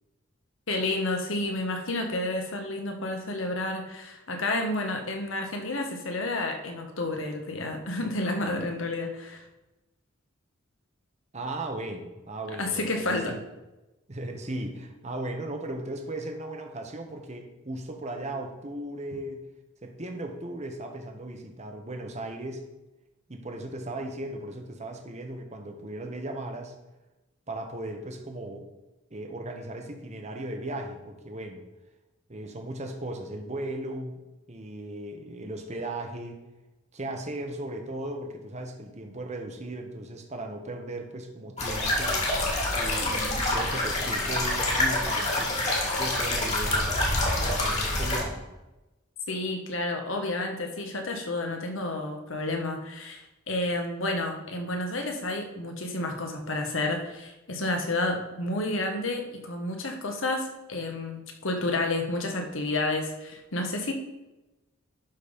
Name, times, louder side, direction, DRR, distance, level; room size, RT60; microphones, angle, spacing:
voice 1, 0.7-9.4 12.6-13.4 49.3-63.9, left 2 dB, 65° left, 3 dB, 1.4 m, -30 dB
voice 2, 11.3-13.4 14.1-19.4 19.8-22.6 23.3-26.7 27.5-28.7 29.1-31.6 32.3-34.2 34.5-36.4 36.9-42.3 42.7-48.5, right 1 dB, 35° right, 4 dB, 1.0 m, -37 dB
sound 1, 41.6-48.2, left 1 dB, 35° left, 2.1 m, -26 dB
11.5 x 4.1 x 5.2 m, 1.0 s
head